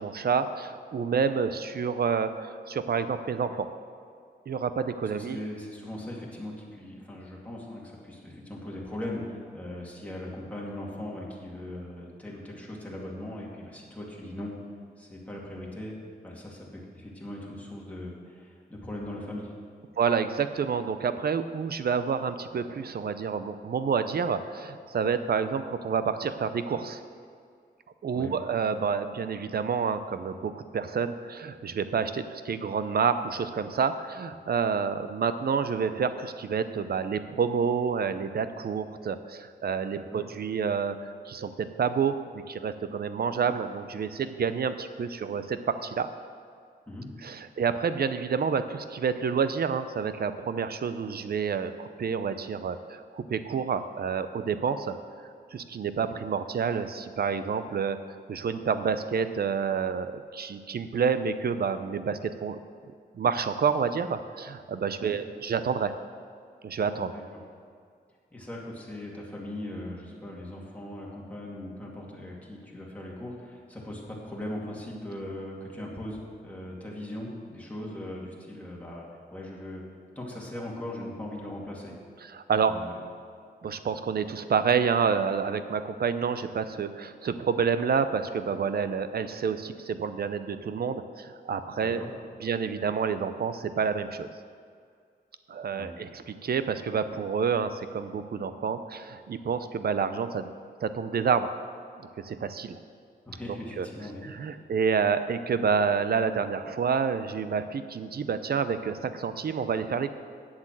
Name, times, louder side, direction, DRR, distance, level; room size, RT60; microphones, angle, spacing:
voice 1, 0.0-3.7 4.5-5.4 20.0-27.0 28.0-46.1 47.2-55.0 55.5-62.6 63.1-66.0 66.6-67.1 82.3-82.7 83.6-92.0 92.4-94.3 95.5-100.5 100.8-101.5 102.2-102.7 103.8-103.9 104.2-110.1, right 6 dB, 60° right, 11 dB, 0.6 m, -28 dB
voice 2, 5.0-14.5 15.0-15.9 16.2-19.5 28.1-28.3 39.9-40.2 46.9-47.1 65.0-65.2 67.1-67.4 68.3-79.8 80.1-81.9 82.6-83.0 91.8-92.1 95.7-95.9 103.3-104.7, left 1 dB, 10° left, -4 dB, 2.5 m, -39 dB
8.9 x 7.9 x 7.5 m, 2.2 s
wide cardioid pair, 110°, 18 cm